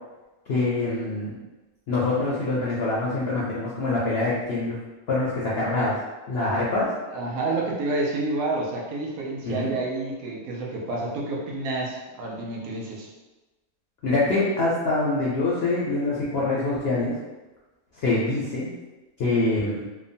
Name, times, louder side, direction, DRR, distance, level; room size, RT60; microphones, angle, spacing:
voice 1, 0.5-1.4 1.9-4.8 5.1-5.9 6.3-6.9 9.4-9.7 14.0-17.2 18.0-18.7 19.2-19.9, left 2 dB, 65° left, -6 dB, 0.6 m, -25 dB
voice 2, 7.1-13.1, right 2 dB, 80° right, -3 dB, 1.1 m, -29 dB
2.9 x 2.1 x 2.6 m, 1.1 s
omnidirectional pair, 1.5 m